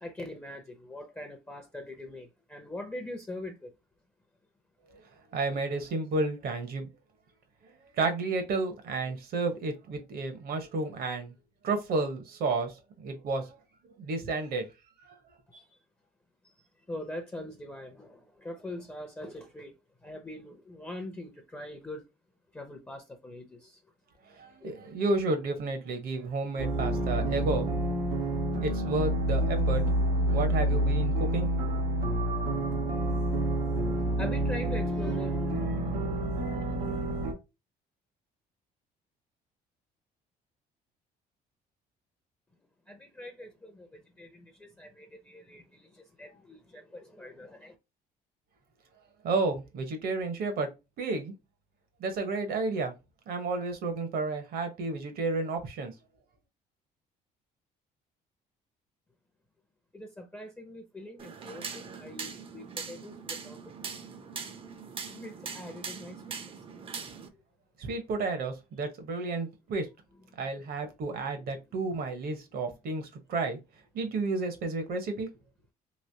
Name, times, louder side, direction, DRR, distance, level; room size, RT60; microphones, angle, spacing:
voice 1, 0.0-3.7 15.5-15.6 16.4-16.5 16.9-19.7 20.0-22.0 22.5-23.8 24.6-24.7 34.2-35.7 42.9-47.7 59.9-63.6 65.1-66.4 70.3-70.5 71.1-71.5, left 1 dB, 10° left, 0.6 m, -43 dB
voice 2, 5.3-6.9 8.0-11.3 11.6-13.6 14.0-14.7 15.0-15.2 24.3-27.7 28.6-29.8 30.1-31.6 49.2-50.7 51.0-51.3 52.0-52.9 53.3-55.9 67.8-69.9 70.4-73.6 73.9-75.3, right 3 dB, 65° right, 1.0 m, -31 dB
sound 1, 26.6-37.3, right 1 dB, 90° right, 1.0 m, -28 dB
sound 2, 61.2-67.3, right 5 dB, 35° right, 0.5 m, -41 dB
3.2 x 2.9 x 2.7 m
cardioid pair, 110°, 17 cm